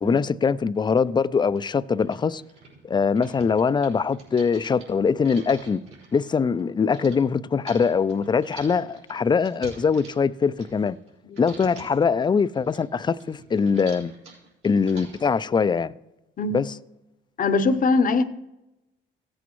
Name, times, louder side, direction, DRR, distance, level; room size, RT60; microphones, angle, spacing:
voice 1, 0.0-2.4 2.8-5.8 6.1-11.0 11.4-14.1 14.6-15.9 16.5-16.7, left 5 dB, 25° left, 0.4 m, -22 dB
sound 1, 0.9-1.0 1.6-1.7 1.9-7.2 7.6-11.1 11.3-12.0 12.4-15.4, right 4 dB, 80° right, 4.4 m, -46 dB
voice 2, 17.4-18.2, left 3 dB, 45° left, 0.7 m, -21 dB
16.0 x 8.4 x 3.1 m
cardioid pair, 90°, 20 cm